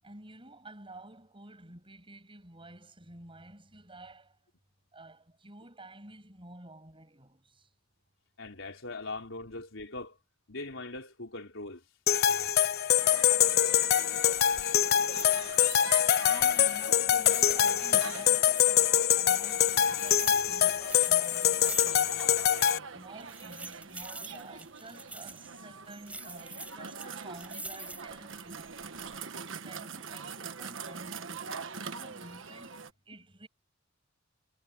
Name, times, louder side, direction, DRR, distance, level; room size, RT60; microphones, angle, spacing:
voice 1, 0.0-4.4 4.9-7.7 12.3-12.5 16.3-22.4 22.9-28.8 29.5-33.5, right 2 dB, 25° right, 7.9 m, -51 dB
voice 2, 8.4-10.2 10.5-11.8 16.9-17.0, left 2 dB, 75° left, 4.8 m, -41 dB
sound 1, 12.1-22.8, left 10 dB, 55° left, 0.5 m, -25 dB
sound 2, 13.0-32.9, right 5 dB, 70° right, 1.5 m, -44 dB
sound 3, 14.3-14.7 15.0-16.1 16.4-18.7 19.1-22.3 22.5-22.6 23.2-25.5 26.1-28.2 28.7-29.2, right 2 dB, 5° right, 5.9 m, -45 dB
head